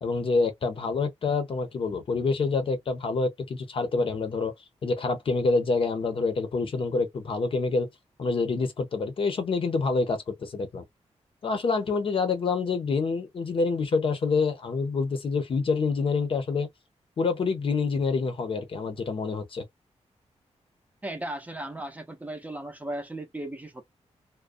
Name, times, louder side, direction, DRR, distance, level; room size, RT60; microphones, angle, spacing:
voice 1, 0.0-4.5 4.8-7.9 8.2-10.8 11.4-16.7 17.2-19.6, left 4 dB, 50° left, 0.7 m, -27 dB
voice 2, 21.0-23.8, right 1 dB, 15° right, 0.6 m, -36 dB
2.4 x 2.1 x 2.4 m
wide cardioid pair, 160°, 12 cm